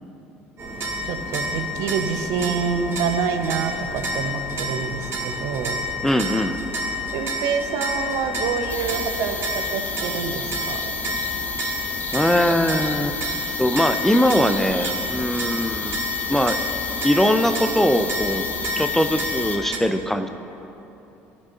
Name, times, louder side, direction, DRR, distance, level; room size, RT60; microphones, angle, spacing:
sound 1, 0.6-19.8, left 1 dB, 40° right, 1.7 m, -29 dB
voice 1, 1.0-5.8 7.1-10.9, right 6 dB, 65° right, 7 dB, 0.7 m, -27 dB
voice 2, 6.0-6.6 12.1-13.2 13.6-16.0 16.3-16.6 17.0-18.4 18.8-20.3, equal, 5° left, 8 dB, 0.5 m, -21 dB
sound 2, 8.7-19.6, left 4 dB, 30° left, 1.0 m, -31 dB
15.0 x 6.4 x 2.9 m, 3.0 s
hypercardioid pair, 60°, 6 cm